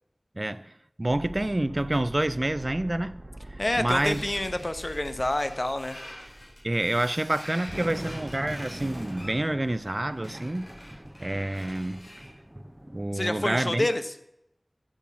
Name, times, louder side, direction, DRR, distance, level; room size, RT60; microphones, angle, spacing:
voice 1, 0.4-0.7 1.0-3.1 3.8-4.2 6.6-10.7 11.2-12.1 12.9-13.9, right 1 dB, 45° right, 0.4 m, -28 dB
sound 1, 1.1-7.1, right 1 dB, 70° right, 0.8 m, -44 dB
voice 2, 3.6-6.0 13.1-14.1, left 1 dB, 55° left, 0.8 m, -28 dB
sound 2, 3.9-12.4, equal, 90° left, 4.3 m, -47 dB
sound 3, 7.1-7.2 7.7-13.1, equal, 20° right, 0.7 m, -41 dB
8.1 x 7.6 x 7.4 m
wide cardioid pair, 45°, 0 cm